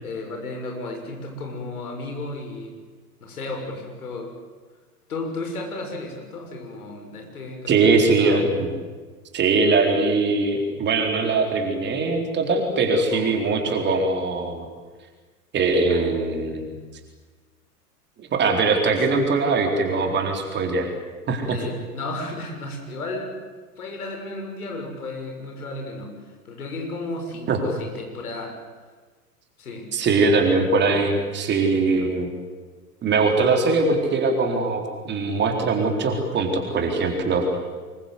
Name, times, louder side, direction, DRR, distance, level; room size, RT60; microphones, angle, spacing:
voice 1, 0.0-2.8 3.2-4.3 5.1-8.7 12.8-13.3 13.7-13.8 21.5-23.4 23.8-26.1 26.4-28.6 29.6-29.9 31.9-32.1, left 2 dB, 65° left, 2 dB, 6.6 m, -34 dB
voice 2, 7.7-8.7 9.3-14.6 15.5-16.7 18.2-20.9 21.3-21.6 27.5-27.6 29.9-32.3 33.0-37.5, right 3 dB, 20° right, 3 dB, 3.9 m, -21 dB
25.5 x 22.5 x 8.1 m, 1.4 s
figure-of-eight pair, 100°, 48 cm